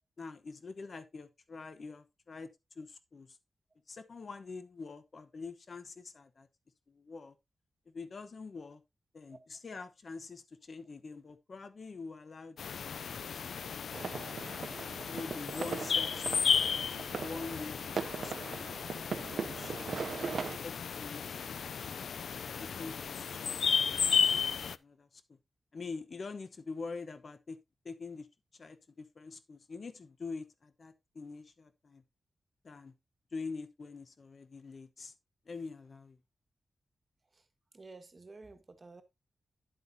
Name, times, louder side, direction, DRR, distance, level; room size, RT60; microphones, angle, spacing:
voice 1, 0.2-2.5 2.7-3.4 3.9-6.5 6.9-7.3 7.9-8.8 9.1-14.2 15.0-16.5 16.9-18.7 19.3-20.2 20.6-21.9 22.6-23.6 23.9-24.0 24.3-25.4 25.7-27.6 27.8-28.3 28.5-32.0 32.6-32.9 33.3-35.1 35.4-36.2, left 4 dB, 40° left, 0.9 m, -45 dB
sound 1, 12.6-24.8, left 6 dB, 70° left, 0.4 m, -34 dB
sound 2, 13.9-20.6, right 5 dB, 60° right, 0.5 m, -40 dB
voice 2, 37.7-39.0, right 3 dB, 30° right, 1.3 m, -52 dB
10.0 x 7.8 x 2.7 m
wide cardioid pair, 180°, 0 cm